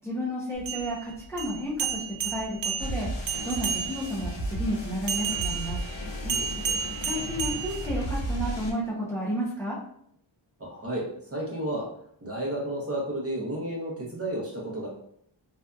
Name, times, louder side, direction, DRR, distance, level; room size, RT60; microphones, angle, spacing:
voice 1, 0.0-5.8 7.0-9.8, equal, 5° left, -6 dB, 0.5 m, -32 dB
sound 1, 0.6-4.2 5.1-8.3, right 7 dB, 70° right, 0.5 m, -32 dB
sound 2, 2.8-8.7, equal, 70° left, 0.8 m, -34 dB
voice 2, 6.2-6.8 10.6-11.9 12.2-14.9, right 1 dB, 30° right, -3 dB, 0.8 m, -32 dB
2.6 x 2.4 x 2.2 m, 0.68 s
wide cardioid pair, 110°, 47 cm